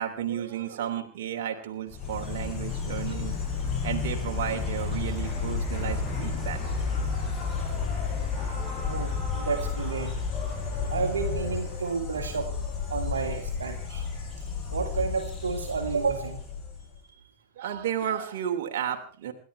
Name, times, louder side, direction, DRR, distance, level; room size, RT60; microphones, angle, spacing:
voice 1, 0.0-3.4 3.8-6.6 17.6-19.3, right 9 dB, 55° right, 3 dB, 3.1 m, -32 dB
Insect, 1.9-17.0, left 5 dB, 25° left, 6.3 m, -31 dB
voice 2, 8.9-10.2 10.9-12.5 12.9-14.0 14.7-16.5, right 5 dB, 70° right, 3 dB, 2.7 m, -31 dB
28.0 x 13.0 x 3.4 m, 0.39 s
figure-of-eight pair, 90°, 0 cm